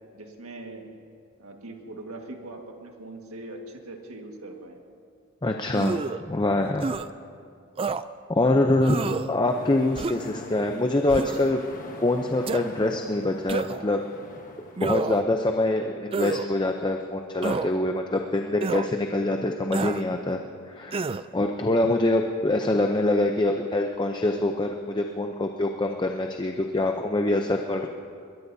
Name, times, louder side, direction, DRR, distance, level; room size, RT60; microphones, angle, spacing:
voice 1, 0.1-1.0 1.4-4.8, right 2 dB, 75° right, 2 dB, 1.7 m, -41 dB
voice 2, 5.4-6.9 8.3-11.6 12.0-14.0 14.8-20.4 20.7-27.9, left 2 dB, 20° left, 4 dB, 0.6 m, -25 dB
sound 1, 5.7-6.2 6.8-7.1 7.8-8.0 8.8-9.3 9.9-10.3 11.1-11.5 12.4-12.6 13.5-13.9 14.8-15.3 16.1-16.5 17.4-17.7 18.6-18.9 19.7-20.0 20.9-21.2, right 4 dB, 25° right, 0.3 m, -29 dB
sound 2, 9.0-16.9, left 1 dB, 80° left, 3.6 m, -52 dB
sound 3, 9.5-15.2, left 2 dB, 40° left, 1.3 m, -44 dB
22.0 x 21.0 x 2.7 m, 2.3 s
head